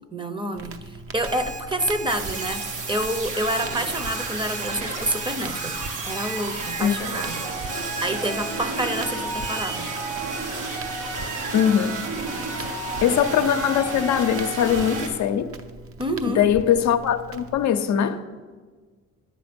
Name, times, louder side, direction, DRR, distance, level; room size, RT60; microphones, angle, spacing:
voice 1, 0.1-5.8 6.0-9.9 12.6-12.7 16.0-16.4, right 1 dB, 15° right, 0.8 m, -28 dB
Crackle, 0.5-17.7, right 3 dB, 50° right, 0.8 m, -41 dB
Alarm, 1.3-9.6, right 3 dB, 70° right, 1.4 m, -38 dB
sound 1, 2.1-15.1, right 3 dB, 85° right, 1.7 m, -31 dB
voice 2, 11.5-12.0 13.0-15.5 16.3-18.2, left 9 dB, 65° left, 0.7 m, -21 dB
10.0 x 7.8 x 5.2 m
cardioid pair, 90°, 30 cm